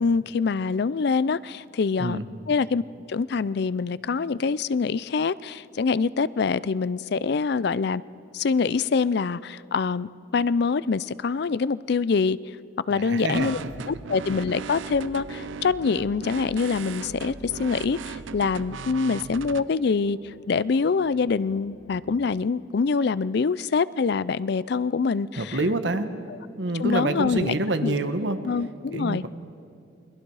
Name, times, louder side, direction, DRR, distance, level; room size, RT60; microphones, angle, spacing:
voice 1, 0.0-2.2 2.5-2.8 3.1-8.0 8.3-12.4 12.9-13.6 13.9-25.6 26.8-27.5 27.8-27.9 28.5-29.2, left 5 dB, 60° left, 18 dB, 0.4 m, -25 dB
voice 2, 12.9-13.5 25.4-26.1 26.6-28.4 28.9-29.3, right 2 dB, 65° right, 9 dB, 1.3 m, -26 dB
sound 1, 13.3-19.6, right 5 dB, 80° right, 0.5 m, -38 dB
sound 2, 14.2-22.3, right 1 dB, 35° left, 3.8 m, -49 dB
28.5 x 22.0 x 4.8 m, 2.5 s
head